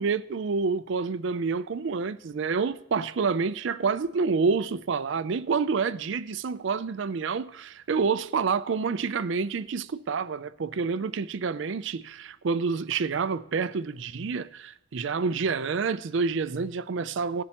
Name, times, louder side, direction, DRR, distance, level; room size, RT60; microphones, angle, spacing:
voice 1, 0.0-17.4, right 5 dB, 60° right, 0.4 m, -28 dB
18.0 x 7.5 x 2.9 m
head